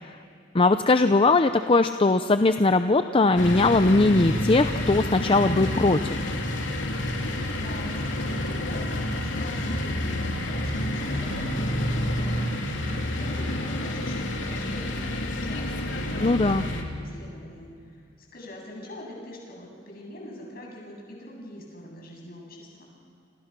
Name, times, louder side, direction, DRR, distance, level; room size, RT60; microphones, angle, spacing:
voice 1, 0.5-6.2 16.2-16.6, left 3 dB, 30° left, 9 dB, 0.6 m, -20 dB
sound 1, 3.4-16.8, left 1 dB, 90° left, 3.0 m, -29 dB
voice 2, 7.5-18.0 18.3-22.8, left 1 dB, 55° left, -1 dB, 7.8 m, -43 dB
28.5 x 27.0 x 6.1 m, 2.3 s
head